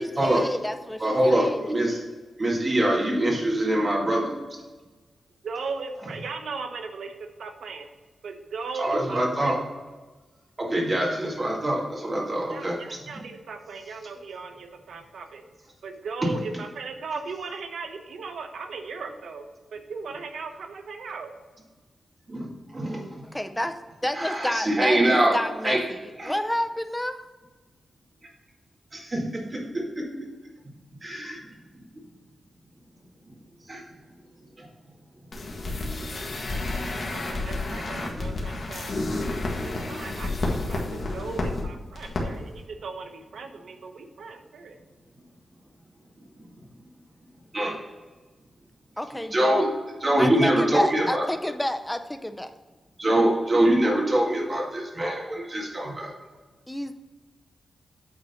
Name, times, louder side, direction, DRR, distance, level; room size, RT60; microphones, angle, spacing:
voice 1, 0.0-1.7 23.3-23.7 24.0-27.2 49.0-49.6 50.2-52.5 56.7-56.9, left 1 dB, 5° left, 8 dB, 0.5 m, -30 dB
voice 2, 1.0-2.0 2.4-4.4 8.8-9.6 10.6-12.8 16.2-16.3 22.3-23.3 24.1-25.3 25.6-25.8 26.2-26.3 28.9-30.3 31.0-31.4 31.8-31.9 33.7-33.8 34.6-34.7 46.6-46.7 47.5-47.7 49.3-49.7 50.0-51.2 53.0-56.1, right 1 dB, 30° right, -2 dB, 2.0 m, -24 dB
voice 3, 5.4-7.9 8.2-9.5 12.5-15.4 15.8-21.3 37.1-39.0 39.6-44.8, right 4 dB, 85° right, 6 dB, 0.9 m, -37 dB
sound 1, 35.3-41.6 41.9-42.2 42.5-42.6, left 2 dB, 45° left, 1.6 m, -30 dB
8.8 x 4.0 x 5.6 m, 1.3 s
wide cardioid pair, 145°, 0 cm